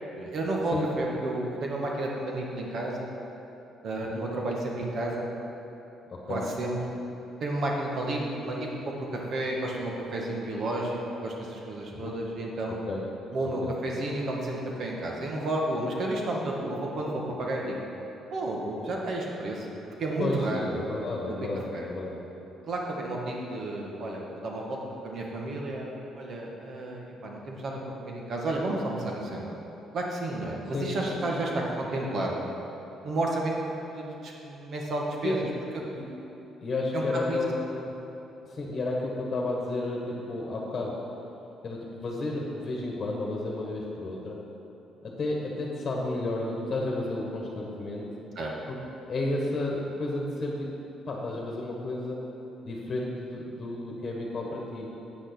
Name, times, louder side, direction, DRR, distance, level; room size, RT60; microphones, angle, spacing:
voice 1, 0.2-3.1 3.8-5.3 6.3-6.8 7.4-12.9 13.3-17.8 18.3-19.7 20.0-20.7 21.3-21.4 21.7-21.9 22.7-29.5 29.9-32.5 33.0-35.4 36.9-37.4 48.4-48.5, right 1 dB, 50° right, -1 dB, 1.8 m, -32 dB
voice 2, 6.1-6.4 11.8-12.1 12.7-13.0 13.6-13.7 20.2-22.2 30.7-31.2 35.2-35.4 35.9-36.1 36.6-37.6 38.0-38.1 38.5-41.0 41.6-44.4 45.0-48.1 48.7-48.8 49.1-50.7 51.1-52.2 52.6-54.9, left 2 dB, 35° left, -2 dB, 1.6 m, -32 dB
8.8 x 6.4 x 6.2 m, 3.0 s
cardioid pair, 110°, 0 cm